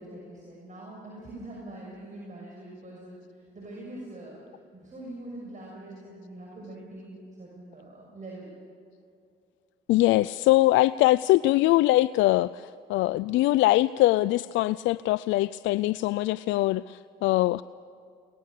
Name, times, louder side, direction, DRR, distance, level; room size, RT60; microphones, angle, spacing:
voice 1, 0.0-3.2 3.5-4.4 4.7-8.5, right 1 dB, 40° right, -3 dB, 6.7 m, -43 dB
voice 2, 9.9-17.6, left 17 dB, 70° left, 17 dB, 0.4 m, -22 dB
23.0 x 18.5 x 6.7 m, 2.5 s
supercardioid pair, 65°, 20 cm